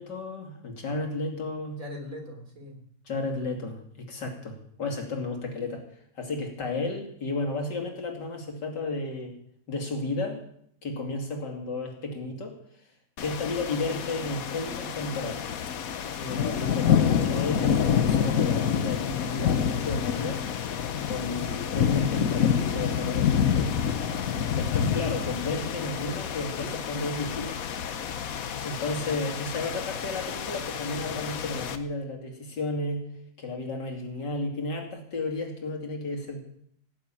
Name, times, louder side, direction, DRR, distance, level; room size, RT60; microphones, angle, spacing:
voice 1, 0.0-1.8 3.1-5.8 6.2-9.4 9.7-10.4 10.8-12.6 13.2-15.4 16.2-20.4 21.1-23.8 24.5-27.6 28.6-33.1 33.4-36.4, left 2 dB, 80° left, 1 dB, 3.2 m, -33 dB
voice 2, 1.8-2.8 28.9-29.8, left 1 dB, 50° right, 2 dB, 4.2 m, -43 dB
sound 1, 13.2-31.8, left 8 dB, 60° left, 1.3 m, -28 dB
sound 2, 22.6-22.7 23.9-24.1 25.2-25.4 26.6-26.8, left 1 dB, 35° left, 3.1 m, -42 dB
17.5 x 7.4 x 8.8 m, 0.67 s
omnidirectional pair, 1.9 m